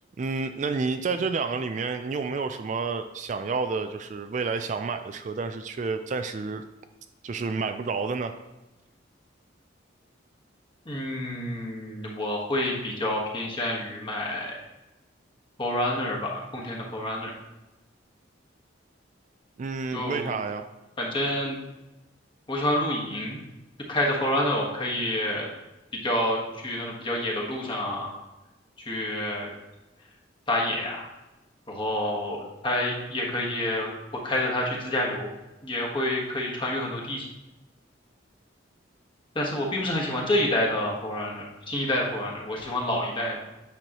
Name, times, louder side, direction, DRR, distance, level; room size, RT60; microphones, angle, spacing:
voice 1, 0.2-6.6 7.2-8.4 19.6-20.7, right 4 dB, 40° right, 8 dB, 0.3 m, -30 dB
voice 2, 10.8-14.5 15.6-17.3 19.9-20.4 21.0-21.6 22.5-23.4 23.9-25.5 26.0-28.1 28.8-29.5 30.5-31.1 31.7-33.9 34.2-35.3 35.6-37.3 39.3-43.4, left 1 dB, 25° left, -2 dB, 1.4 m, -28 dB
8.9 x 6.2 x 3.0 m, 1.1 s
head